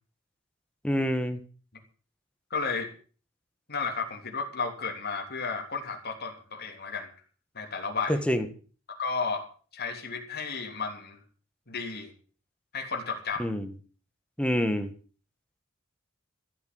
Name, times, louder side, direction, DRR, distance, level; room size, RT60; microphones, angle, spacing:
voice 1, 0.8-1.4 8.1-8.5 13.4-13.7 14.4-14.9, equal, 5° left, 8 dB, 1.7 m, -26 dB
voice 2, 2.5-2.9 3.7-7.1 7.5-8.2 9.0-9.4 9.7-11.2 11.7-12.1 12.7-13.5, left 4 dB, 50° left, 2 dB, 3.3 m, -33 dB
14.5 x 8.8 x 7.8 m, 0.40 s
head